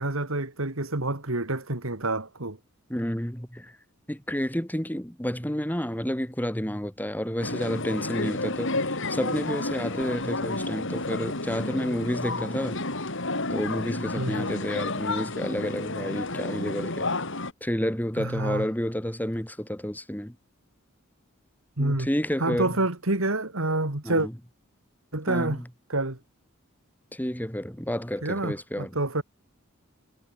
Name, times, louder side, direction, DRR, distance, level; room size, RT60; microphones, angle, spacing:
voice 1, 0.0-2.6 14.2-14.5 18.2-18.7 21.8-22.1 22.4-24.3 25.1-25.6 25.9-26.2 28.2-29.2, right 2 dB, 70° right, 2.9 m, -28 dB
voice 2, 2.9-3.8 4.1-12.8 13.5-17.1 17.6-20.4 21.8-22.8 24.0-24.3 25.3-25.7 27.1-29.0, equal, 10° left, 3.8 m, -30 dB
sound 1, 7.4-17.5, left 2 dB, 60° left, 6.6 m, -31 dB
head